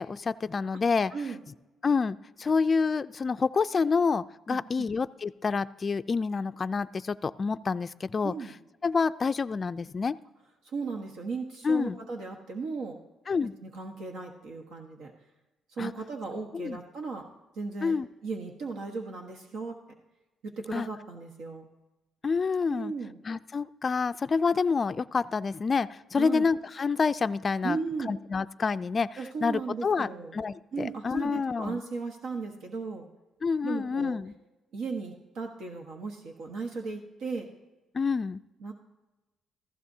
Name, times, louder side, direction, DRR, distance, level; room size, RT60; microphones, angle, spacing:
voice 1, 0.0-1.1 1.8-8.3 8.8-10.2 11.6-12.0 13.3-13.5 15.8-15.9 16.5-16.8 17.8-18.1 20.7-20.9 22.2-22.9 23.2-27.8 28.1-31.8 33.4-34.3 37.9-38.4, left 5 dB, 35° left, 12 dB, 0.3 m, -28 dB
voice 2, 4.5-4.9 8.2-8.5 10.6-13.0 13.6-15.1 15.7-17.3 17.5-17.9 18.2-19.8 20.4-21.7 22.7-23.2 26.2-26.5 27.6-28.1 29.2-30.3 30.7-33.1 33.6-34.2 34.7-37.5 38.6-38.7, right 4 dB, 80° right, 2 dB, 1.2 m, -36 dB
15.0 x 14.5 x 2.7 m, 1.1 s
cardioid pair, 90°, 0 cm